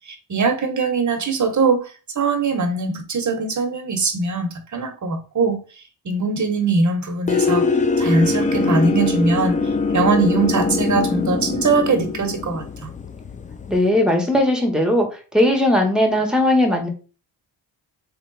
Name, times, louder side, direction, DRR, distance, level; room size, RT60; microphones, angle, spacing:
voice 1, 0.1-1.9 2.1-5.6 6.0-7.6 8.0-12.9, right 3 dB, 40° right, 1.2 m, -21 dB
sound 1, 7.3-13.9, left 4 dB, 15° left, 0.4 m, -22 dB
voice 2, 13.7-15.1 15.3-16.9, left 1 dB, ahead, 1.5 m, -18 dB
3.7 x 3.3 x 4.0 m
cardioid pair, 70°, 46 cm